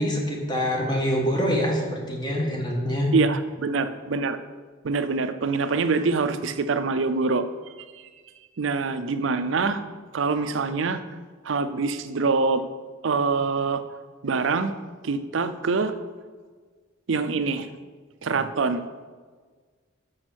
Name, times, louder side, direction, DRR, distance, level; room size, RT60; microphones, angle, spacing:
voice 1, 0.0-3.1, equal, 20° left, 0 dB, 1.4 m, -25 dB
voice 2, 3.1-4.4 4.8-7.4 8.6-9.8 10.1-11.0 11.4-12.6 13.0-13.8 14.2-14.7 15.0-15.9 17.1-17.7 18.2-18.8, right 4 dB, 70° right, 10 dB, 0.5 m, -24 dB
6.3 x 6.1 x 6.2 m, 1.5 s
head